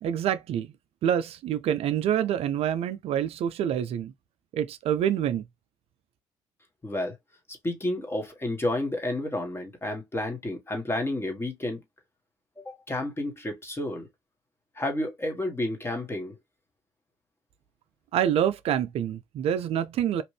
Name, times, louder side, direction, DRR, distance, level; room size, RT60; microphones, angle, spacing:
voice 1, 0.0-0.7 1.0-4.1 4.5-5.4 18.1-20.2, right 9 dB, 60° right, 0.4 m, -26 dB
voice 2, 6.8-7.1 7.6-11.8 12.6-14.1 14.8-16.3, left 1 dB, 20° left, 1.4 m, -31 dB
2.9 x 2.6 x 3.2 m
hypercardioid pair, 60°, 11 cm